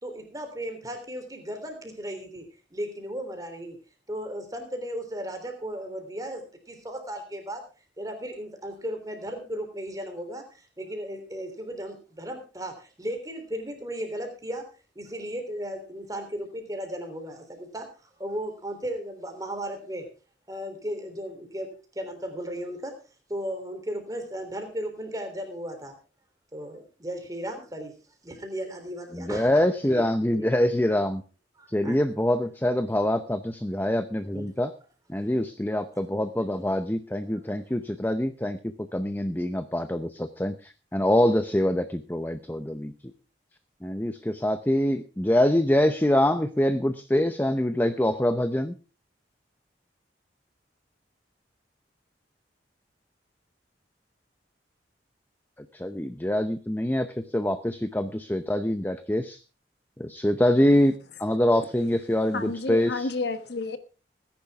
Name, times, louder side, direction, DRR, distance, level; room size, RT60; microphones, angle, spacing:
voice 1, 0.0-2.4 2.7-3.8 4.1-7.6 8.0-14.7 14.9-17.9 18.2-20.1 20.5-22.9 23.3-26.0 26.5-28.0 28.2-30.1 30.3-30.5 31.6-32.0 34.3-34.5 37.3-37.4, equal, 20° right, 3.3 m, -35 dB
voice 2, 29.1-31.2 31.7-34.7 35.1-43.1 43.8-48.8 55.6-59.4 60.0-63.1, left 1 dB, 10° left, 0.7 m, -25 dB
voice 3, 62.3-63.8, left 3 dB, 65° left, 1.3 m, -30 dB
19.5 x 10.5 x 3.5 m
head